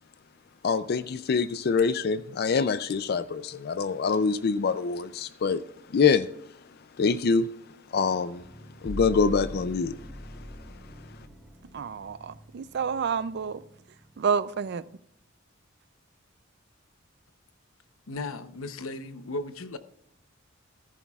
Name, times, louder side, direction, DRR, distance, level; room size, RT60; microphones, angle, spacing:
voice 1, 0.6-5.6 5.9-6.3 7.0-7.5 7.9-8.4 8.8-10.0, left 5 dB, 50° left, 0.4 m, -25 dB
sound 1, 8.4-14.6, equal, 5° left, 2.8 m, -43 dB
voice 2, 11.7-13.6 14.2-14.8, right 6 dB, 55° right, 0.4 m, -29 dB
voice 3, 18.1-19.8, left 2 dB, 90° left, 0.8 m, -36 dB
14.0 x 14.0 x 2.4 m
head